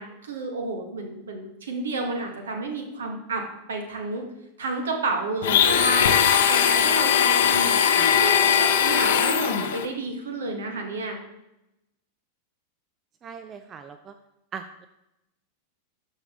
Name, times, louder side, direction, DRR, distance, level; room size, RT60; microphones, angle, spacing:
voice 1, 0.0-3.4 3.7-4.3 4.6-6.2 6.5-11.2, right 2 dB, 65° right, 3 dB, 1.5 m, -30 dB
Domestic sounds home sounds, 5.4-9.9, left 8 dB, 55° left, 0.7 m, -20 dB
voice 2, 7.9-8.6 13.2-14.1 14.5-14.9, right 6 dB, 25° right, 9 dB, 0.4 m, -40 dB
12.5 x 4.7 x 3.7 m, 0.91 s
figure-of-eight pair, 90°, 0 cm